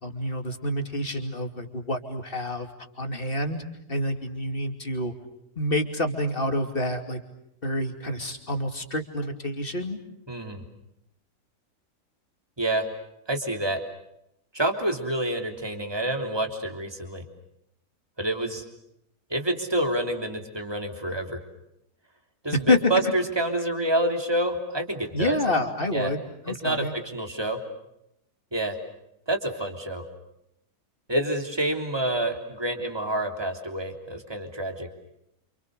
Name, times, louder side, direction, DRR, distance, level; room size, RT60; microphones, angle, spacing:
voice 1, 0.0-2.7 3.0-3.6 3.9-5.1 5.6-7.2 7.6-10.0 22.7-22.8 25.1-26.9, left 1 dB, 30° left, 5 dB, 2.9 m, -28 dB
voice 2, 10.3-10.6 12.6-12.9 13.3-13.8 14.5-17.2 18.2-18.6 19.3-21.4 22.4-25.4 25.9-26.1 26.5-27.6 28.5-28.8 29.3-30.0 31.1-34.9, right 1 dB, 15° right, 4 dB, 3.4 m, -28 dB
29.0 x 28.0 x 6.6 m, 0.80 s
omnidirectional pair, 1.8 m